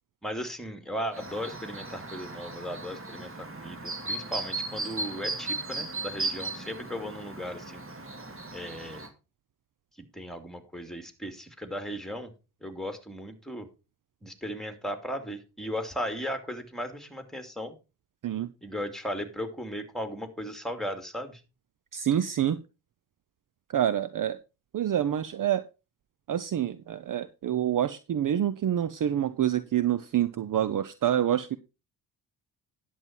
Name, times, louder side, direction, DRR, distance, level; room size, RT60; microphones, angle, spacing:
voice 1, 0.2-7.8 8.5-9.0 10.1-12.3 12.6-13.7 14.2-17.7 18.6-21.4, equal, ahead, 8 dB, 2.6 m, -36 dB
Chirp tweet, 1.1-9.1, right 3 dB, 25° right, 2.3 m, -36 dB
voice 2, 21.9-22.6 23.7-24.4 24.7-25.6 26.3-31.6, right 10 dB, 45° right, 14 dB, 0.8 m, -27 dB
11.0 x 7.5 x 4.5 m, 0.29 s
hypercardioid pair, 45°, 47 cm